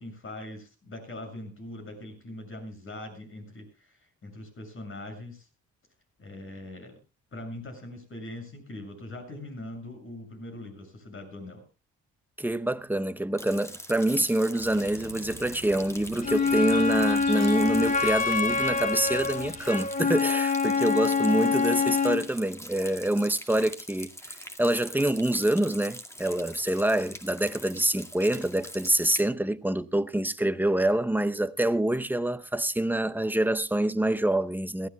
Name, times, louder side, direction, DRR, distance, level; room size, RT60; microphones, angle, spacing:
voice 1, 0.0-5.5 6.2-7.0 7.3-11.6, left 1 dB, 45° left, 6.9 m, -41 dB
voice 2, 12.4-34.9, right 1 dB, 5° right, 0.7 m, -26 dB
Rain, 13.4-29.2, left 1 dB, 10° left, 2.1 m, -43 dB
sound 1, 14.6-19.6, left 2 dB, 60° left, 7.8 m, -46 dB
Wind instrument woodwind instrument, 16.2-22.2, left 5 dB, 25° left, 1.8 m, -25 dB
22.0 x 15.0 x 2.3 m
cardioid pair, 90°, 30 cm